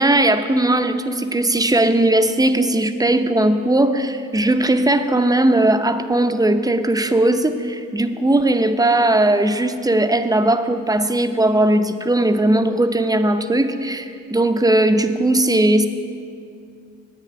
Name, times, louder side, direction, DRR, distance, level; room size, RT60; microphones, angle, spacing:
voice 1, 0.0-15.9, right 1 dB, 10° right, 7 dB, 0.6 m, -18 dB
9.1 x 6.7 x 8.6 m, 2.4 s
cardioid pair, 90°, 30 cm